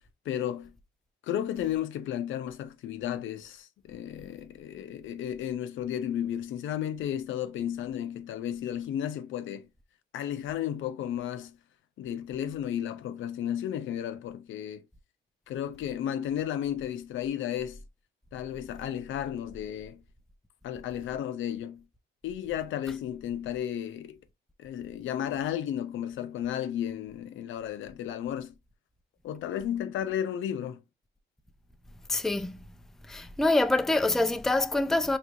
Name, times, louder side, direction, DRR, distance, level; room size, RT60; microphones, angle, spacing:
voice 1, 0.3-0.7 1.2-9.7 10.1-11.6 12.0-14.8 15.5-17.8 18.3-20.0 20.6-21.8 22.2-24.2 24.6-28.5 29.2-30.8, left 10 dB, 75° left, 0.6 m, -33 dB
voice 2, 32.1-32.6 33.1-35.2, left 2 dB, ahead, 0.4 m, -25 dB
4.6 x 3.2 x 2.4 m
cardioid pair, 90°, 20 cm